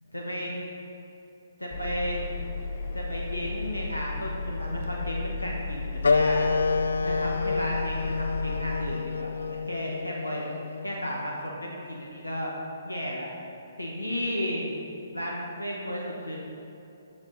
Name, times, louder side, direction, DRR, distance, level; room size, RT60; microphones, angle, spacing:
voice 1, 0.1-0.5 1.6-2.2 2.9-6.4 7.0-10.4 10.8-12.5 12.8-13.3 13.8-14.7 15.1-16.4, equal, 90° left, -3 dB, 1.3 m, -33 dB
Engine, 1.7-9.0, left 3 dB, 45° left, 0.7 m, -34 dB
sound 1, 6.0-11.1, left 4 dB, 65° left, 0.3 m, -28 dB
8.6 x 7.3 x 4.1 m, 2.8 s
figure-of-eight pair, 130°, 0 cm